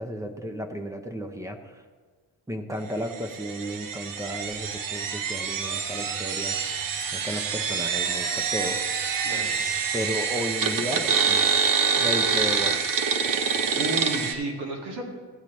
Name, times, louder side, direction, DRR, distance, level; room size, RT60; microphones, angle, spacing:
voice 1, 0.0-1.8 2.5-6.9 7.1-8.8 9.1-9.3 9.9-11.7 11.9-12.8, equal, 10° right, 6 dB, 0.6 m, -34 dB
sound 1, 3.1-14.3, right 6 dB, 55° right, 0.8 m, -26 dB
voice 2, 9.2-10.3 13.7-15.0, right 2 dB, 75° right, -1 dB, 2.0 m, -34 dB
14.5 x 8.3 x 3.1 m, 1.5 s
wide cardioid pair, 155°, 40 cm